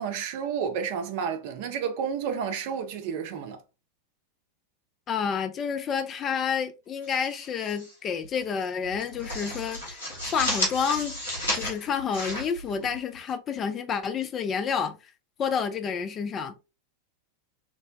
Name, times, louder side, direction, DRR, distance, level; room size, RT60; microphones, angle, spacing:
voice 1, 0.0-3.6, right 7 dB, 50° right, 0.5 m, -31 dB
voice 2, 5.1-10.0 10.3-11.1 11.5-15.0 15.4-16.5, left 6 dB, 25° left, 0.4 m, -29 dB
sound 1, 7.0-7.9 8.2-8.4 8.8-13.3, left 1 dB, 75° left, 1.3 m, -33 dB
3.2 x 2.1 x 2.6 m
figure-of-eight pair, 90°, 0 cm